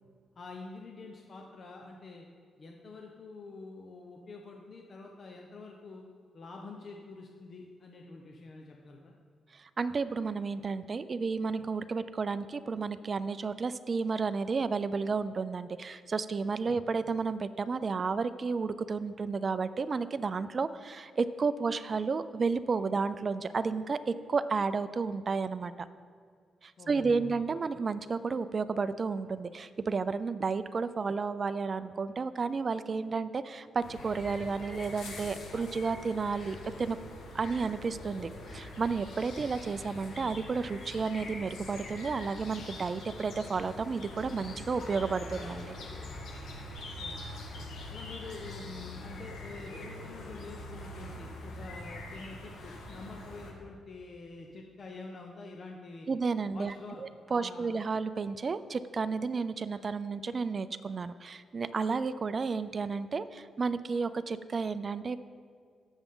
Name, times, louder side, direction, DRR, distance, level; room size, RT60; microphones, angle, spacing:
voice 1, 0.3-2.3 2.6-6.1 6.3-9.1 16.7-16.8 26.8-27.4 39.4-39.5 47.0-47.3 47.9-56.1 56.5-57.7, left 3 dB, 45° left, 1 dB, 0.9 m, -47 dB
voice 2, 9.5-25.9 26.6-37.0 37.3-45.8 56.1-56.7 57.0-65.2, right 4 dB, 40° right, 13 dB, 0.4 m, -32 dB
sound 1, 33.8-53.5, left 1 dB, 80° left, 1.8 m, -44 dB
17.5 x 7.1 x 3.8 m, 2.1 s
cardioid pair, 115°, 0 cm